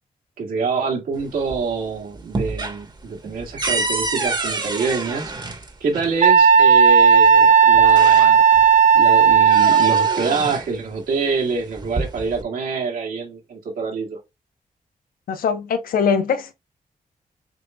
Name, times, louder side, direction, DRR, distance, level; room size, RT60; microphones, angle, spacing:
voice 1, 0.4-5.3 5.8-8.4 8.9-14.2, right 4 dB, 85° right, 1.8 m, -26 dB
sound 1, 1.2-1.8 2.1-6.2 7.2-7.3 7.7-8.7 9.1-10.7 11.6-12.4, right 3 dB, 30° right, 1.1 m, -28 dB
Wind instrument woodwind instrument, 6.2-10.3, right 6 dB, 60° right, 0.6 m, -13 dB
voice 2, 15.3-16.5, left 6 dB, 85° left, 0.8 m, -21 dB
6.5 x 2.6 x 2.2 m
cardioid pair, 75°, 14 cm